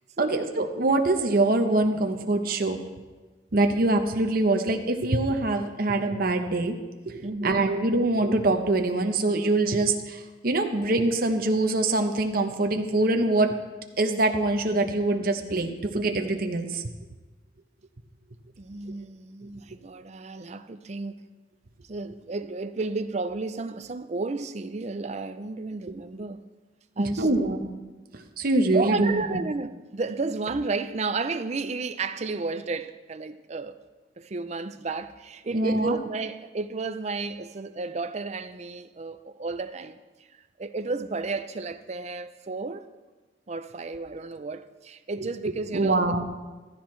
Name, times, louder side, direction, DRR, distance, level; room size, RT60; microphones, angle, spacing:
voice 1, 0.2-2.8 3.5-6.8 7.1-13.5 14.0-16.8 27.0-27.7 28.1-29.2 35.5-36.0 45.7-46.3, right 2 dB, 55° right, 0.9 m, -24 dB
voice 2, 7.2-7.7 18.6-21.3 21.9-26.4 27.0-27.3 28.7-33.8 34.2-42.9 43.5-46.1, right 3 dB, 40° right, 0.5 m, -32 dB
14.5 x 13.0 x 3.2 m
head